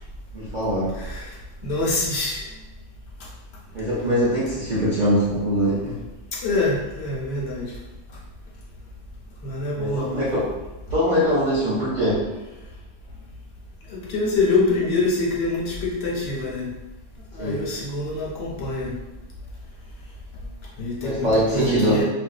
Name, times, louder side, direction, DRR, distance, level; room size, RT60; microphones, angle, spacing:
voice 1, 0.3-0.9 3.7-6.0 9.8-10.4 10.9-12.2 17.4-17.5 21.0-22.0, equal, 45° right, -10 dB, 0.6 m, -22 dB
voice 2, 0.9-1.4 1.6-2.4 6.4-7.7 9.4-10.3 13.9-16.7 17.3-18.9 20.8-22.0, left 3 dB, 65° left, -4 dB, 0.7 m, -25 dB
2.5 x 2.2 x 2.3 m, 1.1 s
omnidirectional pair, 1.3 m